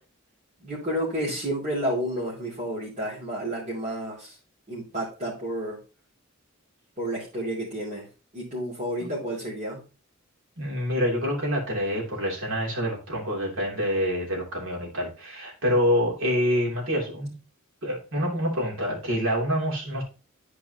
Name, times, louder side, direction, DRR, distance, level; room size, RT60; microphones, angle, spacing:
voice 1, 0.6-4.4 4.7-5.8 7.0-8.1 8.3-9.8, right 1 dB, 35° right, -8 dB, 2.7 m, -30 dB
voice 2, 10.6-17.3 17.8-20.0, equal, 65° right, -1 dB, 2.9 m, -26 dB
11.5 x 4.7 x 2.9 m, 0.33 s
head